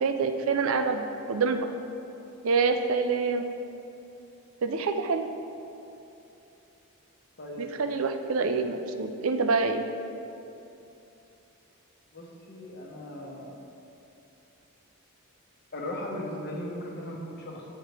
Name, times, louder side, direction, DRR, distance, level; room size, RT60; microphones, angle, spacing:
voice 1, 0.0-1.7 2.4-3.5 4.6-5.3 7.6-9.8, right 4 dB, 65° right, 7 dB, 0.5 m, -26 dB
voice 2, 7.4-7.7 12.1-13.6 15.7-17.7, left 1 dB, 45° left, -2 dB, 1.0 m, -37 dB
9.2 x 5.7 x 3.3 m, 2.8 s
head